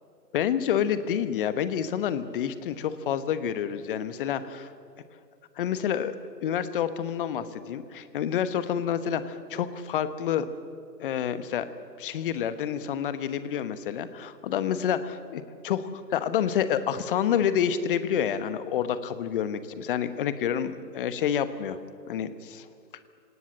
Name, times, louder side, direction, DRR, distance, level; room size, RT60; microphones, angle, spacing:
voice 1, 0.3-4.7 5.6-6.1 6.4-10.5 11.0-11.7 12.0-21.8 22.1-22.7, left 9 dB, 30° left, 13 dB, 1.2 m, -28 dB
27.5 x 18.0 x 7.8 m, 2.3 s
figure-of-eight pair, 125°, 50 cm